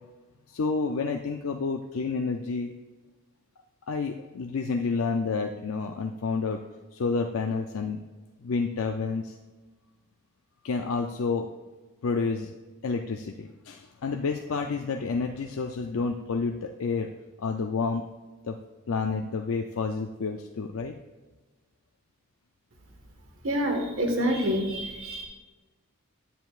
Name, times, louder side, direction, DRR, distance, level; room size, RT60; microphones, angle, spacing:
voice 1, 0.5-2.7 3.9-6.6 6.9-8.0 8.4-9.4 10.6-11.5 12.0-12.5 12.8-17.1 17.4-18.1 18.4-18.6 18.9-20.9, left 4 dB, 70° left, 4 dB, 0.5 m, -29 dB
voice 2, 23.4-25.3, equal, 65° right, 2 dB, 1.5 m, -27 dB
10.5 x 9.2 x 2.4 m, 1.2 s
head